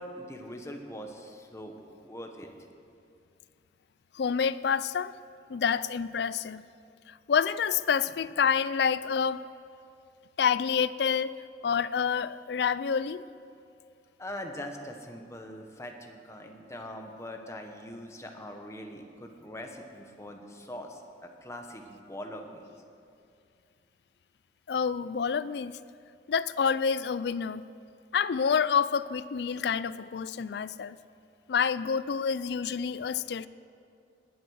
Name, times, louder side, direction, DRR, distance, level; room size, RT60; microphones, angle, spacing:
voice 1, 0.0-1.7 2.0-2.5 14.2-21.0 21.4-22.6, left 1 dB, 15° left, 3 dB, 1.2 m, -42 dB
voice 2, 4.1-5.1 5.5-6.6 7.3-9.4 10.4-11.3 11.6-13.2 24.7-25.8 26.3-27.7 28.1-31.0 31.5-33.5, left 6 dB, 65° left, 16 dB, 0.4 m, -28 dB
20.5 x 7.9 x 6.4 m, 2.5 s
head